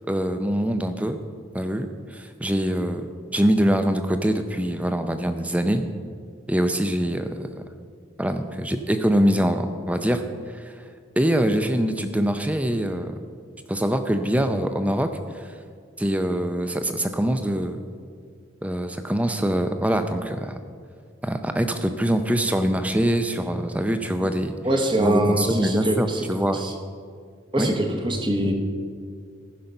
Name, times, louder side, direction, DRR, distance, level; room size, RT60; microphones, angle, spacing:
voice 1, 0.1-1.2 1.5-3.1 3.3-5.8 6.5-7.5 8.2-10.2 10.5-10.7 11.2-13.1 13.7-15.1 16.0-17.8 18.6-20.6 21.2-24.5 25.0-26.6 27.6-27.7, equal, 5° right, 8 dB, 0.5 m, -23 dB
voice 2, 24.6-26.3 26.5-26.7 27.5-28.5, right 1 dB, 25° right, 2 dB, 1.0 m, -24 dB
14.5 x 5.8 x 5.4 m, 2.1 s
head